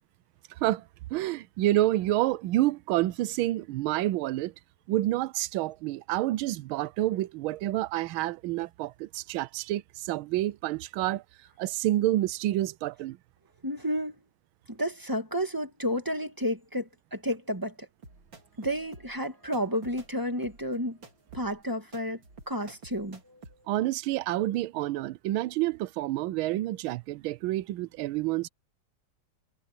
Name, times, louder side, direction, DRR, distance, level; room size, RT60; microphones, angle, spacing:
voice 1, 1.1-4.5 4.9-11.2 11.6-13.2 23.7-28.5, right 15 dB, 80° right, 1.4 m, -28 dB
voice 2, 13.6-14.2 14.7-17.9 18.6-21.0 21.3-22.2 22.5-23.7, equal, 10° right, 1.5 m, -31 dB
sound 1, 18.0-23.5, right 3 dB, 60° right, 4.2 m, -51 dB
omnidirectional pair, 2.4 m